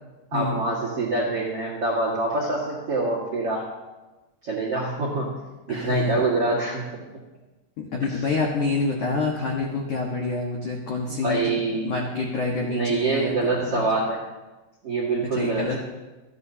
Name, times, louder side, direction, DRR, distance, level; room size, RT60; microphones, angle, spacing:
voice 1, 0.3-3.6 4.4-5.3 5.7-6.8 11.1-11.9 12.6-14.2 14.8-15.8, right 3 dB, 60° right, -3 dB, 1.5 m, -25 dB
voice 2, 5.7-6.2 7.8-13.8 15.3-15.8, left 3 dB, 90° left, -1 dB, 1.7 m, -27 dB
27.5 x 10.5 x 2.8 m, 1.2 s
omnidirectional pair, 6.0 m